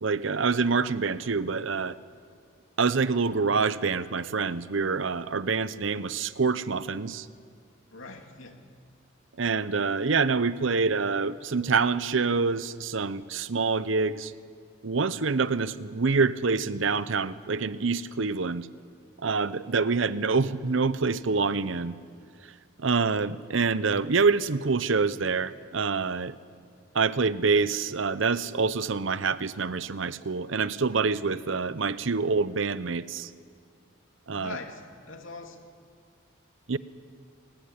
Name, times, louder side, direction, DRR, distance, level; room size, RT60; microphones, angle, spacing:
voice 1, 0.0-2.0 2.8-7.3 9.4-14.3 14.8-18.7 19.2-22.0 22.8-26.4 26.9-33.3 34.3-34.6 36.7-36.8, right 4 dB, 80° right, 16 dB, 0.8 m, -26 dB
voice 2, 7.9-8.6 34.3-35.6, left 4 dB, 85° left, 4 dB, 2.7 m, -42 dB
21.5 x 19.5 x 9.9 m, 2.2 s
head